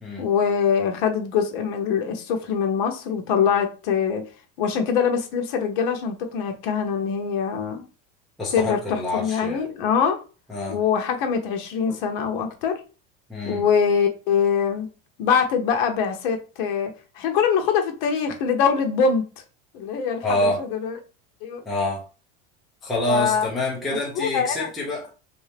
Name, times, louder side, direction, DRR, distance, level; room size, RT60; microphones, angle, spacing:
voice 1, 0.2-4.2 4.6-7.9 8.5-10.2 10.7-12.8 13.4-14.9 15.2-19.3 19.7-21.0 21.4-21.6 23.1-23.5 24.1-24.6, left 6 dB, 60° left, 0.8 m, -23 dB
voice 2, 8.4-9.6 10.5-10.8 13.3-13.6 20.2-20.6 21.7-22.0 22.8-25.1, left 1 dB, ahead, 0.3 m, -26 dB
3.2 x 2.7 x 3.3 m
cardioid pair, 180°, 30 cm